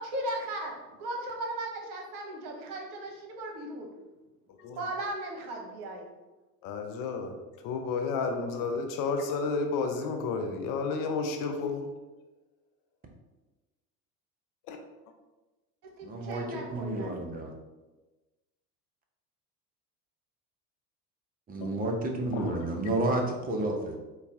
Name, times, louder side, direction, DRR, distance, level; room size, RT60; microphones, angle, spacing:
voice 1, 0.0-3.9 4.7-6.0 16.0-17.1, right 1 dB, 65° right, 1 dB, 1.0 m, -37 dB
voice 2, 6.6-7.3 7.6-11.9 14.7-14.8 21.6-21.7 22.3-22.6, left 4 dB, 45° left, 5 dB, 0.5 m, -31 dB
voice 3, 16.0-17.5 21.5-24.0, right 2 dB, 20° right, 2 dB, 0.7 m, -31 dB
3.9 x 2.3 x 3.6 m, 1.1 s
hypercardioid pair, 75°, 48 cm